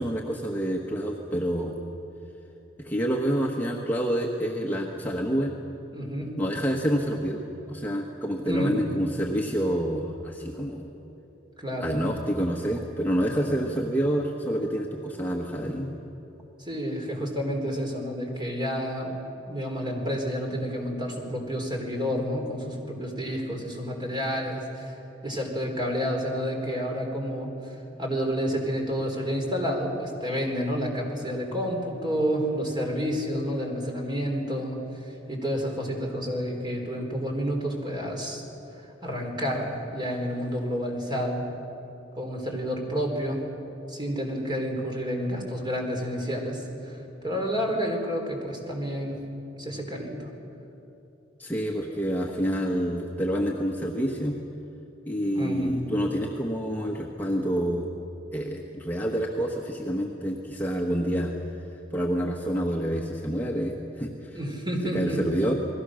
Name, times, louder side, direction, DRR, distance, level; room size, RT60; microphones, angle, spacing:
voice 1, 0.0-1.8 2.8-5.6 6.4-7.4 7.7-10.9 11.8-15.9 51.4-54.4 55.0-57.9 58.3-61.3 61.9-64.4 64.9-65.5, equal, 10° left, -1 dB, 1.3 m, -28 dB
voice 2, 5.9-6.4 8.4-8.8 11.6-12.0 16.6-19.2 19.5-25.0 25.2-38.4 38.7-41.4 42.1-43.4 43.9-49.2 49.6-50.3 55.3-55.8 64.3-65.2, equal, 25° right, 1 dB, 3.9 m, -30 dB
30.0 x 20.5 x 6.4 m, 3.0 s
head